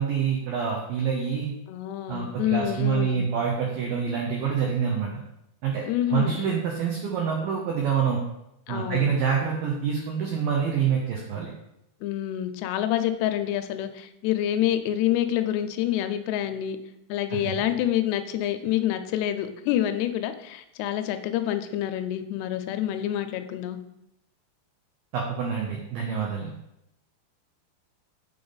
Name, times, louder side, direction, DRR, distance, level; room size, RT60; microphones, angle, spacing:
voice 1, 0.0-1.5 2.1-5.1 5.6-8.2 8.7-11.5 17.3-17.7 25.1-26.5, right 7 dB, 85° right, -1 dB, 1.9 m, -26 dB
voice 2, 1.7-3.2 5.9-6.3 8.7-9.1 12.0-16.8 17.1-23.8, left 12 dB, 85° left, 8 dB, 2.4 m, -27 dB
8.6 x 3.7 x 3.9 m, 0.83 s
omnidirectional pair, 5.0 m